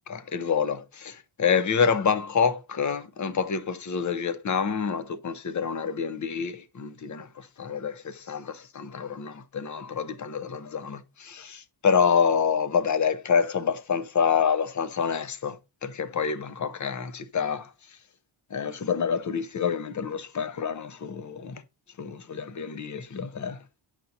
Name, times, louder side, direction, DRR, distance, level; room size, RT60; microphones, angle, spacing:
voice 1, 0.1-18.0 18.5-21.6 22.0-23.6, left 6 dB, 35° left, 0.7 m, -27 dB
9.0 x 5.8 x 2.7 m
cardioid pair, 95°, 50 cm